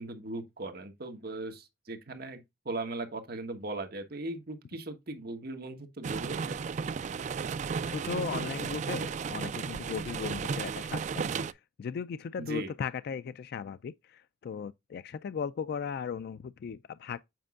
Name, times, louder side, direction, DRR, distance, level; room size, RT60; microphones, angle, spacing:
voice 1, 0.0-2.4 2.6-6.6 12.4-12.7, right 2 dB, 55° right, 1.3 m, -38 dB
sound 1, 6.0-11.5, right 5 dB, 40° right, 0.3 m, -34 dB
voice 2, 7.9-17.2, left 6 dB, 55° left, 0.3 m, -37 dB
7.6 x 5.2 x 2.4 m
head